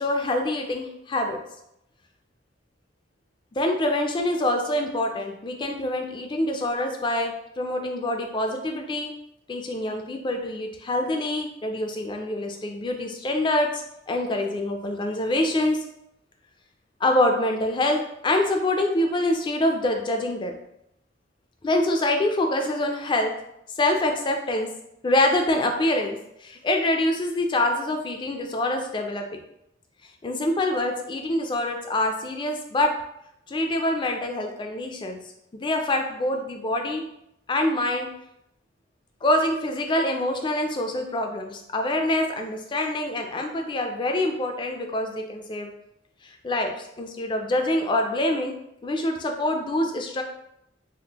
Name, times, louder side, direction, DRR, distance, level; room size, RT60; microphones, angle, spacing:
voice 1, 0.0-1.4 3.5-9.1 9.5-15.8 17.0-20.6 21.6-23.3 23.8-24.7 25.0-29.4 30.2-33.0 33.5-35.2 35.5-37.0 37.5-38.1 39.2-45.7 46.2-48.6 48.8-50.2, left 1 dB, 25° left, 4 dB, 0.3 m, -25 dB
3.5 x 2.1 x 2.8 m, 0.80 s
head